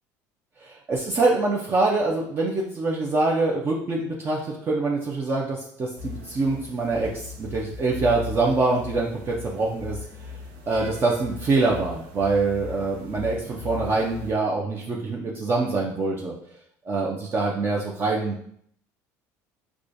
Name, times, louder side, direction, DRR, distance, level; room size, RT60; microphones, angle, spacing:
voice 1, 0.6-10.0 10.7-16.3 16.9-18.4, right 3 dB, 30° right, -2 dB, 0.5 m, -25 dB
sound 1, 6.0-14.3, left 5 dB, 80° right, 0.8 m, -38 dB
4.8 x 2.3 x 2.6 m, 0.67 s
supercardioid pair, 110°, 8 cm